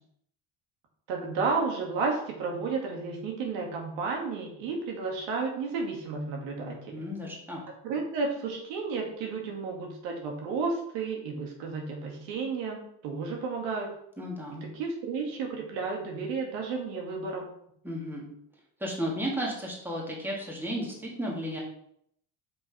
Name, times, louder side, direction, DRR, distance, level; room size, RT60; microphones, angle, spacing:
voice 1, 1.1-7.1 7.8-13.9 14.5-17.5, right 4 dB, 80° right, 0 dB, 2.1 m, -32 dB
voice 2, 6.9-7.6 14.2-14.6 17.8-18.3 18.8-21.6, equal, 5° right, -3 dB, 2.3 m, -33 dB
6.0 x 5.0 x 5.0 m, 0.70 s
cardioid pair, 110°, 44 cm